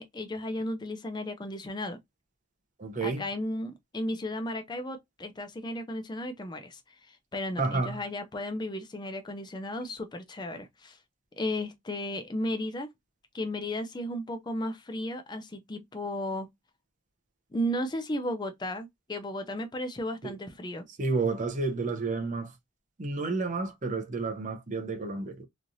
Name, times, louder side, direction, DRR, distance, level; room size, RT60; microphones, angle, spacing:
voice 1, 0.0-2.0 3.0-11.0 11.4-12.9 13.3-16.5 17.5-20.9, left 1 dB, 20° left, 0.4 m, -34 dB
voice 2, 2.8-3.2 7.6-8.0 20.2-20.3 21.0-22.5 23.0-25.4, right 3 dB, 40° right, 0.6 m, -30 dB
3.1 x 2.4 x 2.5 m
head